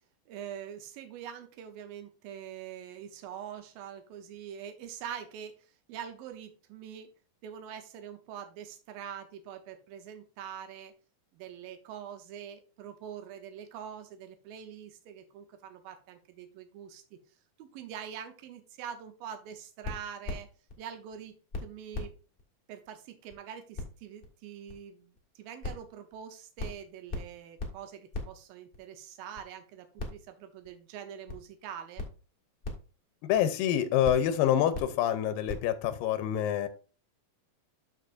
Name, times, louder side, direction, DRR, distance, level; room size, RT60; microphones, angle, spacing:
voice 1, 0.3-7.1 7.4-10.9 11.3-17.0 17.6-20.5 20.8-21.3 21.6-22.1 22.7-32.0, right 9 dB, 90° right, 2.7 m, -44 dB
sound 1, 19.8-20.7 21.1-21.2 21.5-21.6 21.9-22.1 22.4-22.5 22.9-23.0 23.3-23.4 23.7-23.8 24.2-24.3 24.7-24.8 25.2-25.3 25.6-25.8 26.1-26.2 26.6-26.8 27.1-27.3 27.6-27.7 28.1-28.3 28.7-28.8 29.3-29.4 30.0-30.3 30.6-30.7 31.3-31.4 32.0-32.1 32.6-32.8 33.3-33.4 34.0-34.2 34.7-34.9 35.5-35.6, left 2 dB, 50° left, 0.6 m, -36 dB
voice 2, 33.2-36.7, left 10 dB, 90° left, 2.4 m, -27 dB
13.0 x 4.4 x 2.5 m
omnidirectional pair, 4.0 m